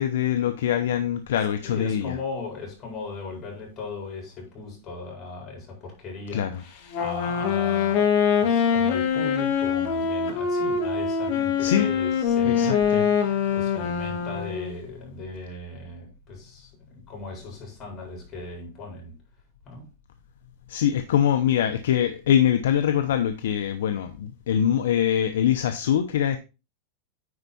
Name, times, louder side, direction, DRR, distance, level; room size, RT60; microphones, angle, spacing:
voice 1, 0.0-2.1 6.3-6.5 11.6-11.9 12.4-13.0 20.7-26.4, left 10 dB, 80° left, 0.8 m, -23 dB
voice 2, 1.6-19.1 19.6-19.9, left 3 dB, 30° left, 4.6 m, -37 dB
Wind instrument woodwind instrument, 6.9-14.8, left 7 dB, 50° left, 1.7 m, -24 dB
9.7 x 4.7 x 4.2 m
supercardioid pair, 145°, 0 cm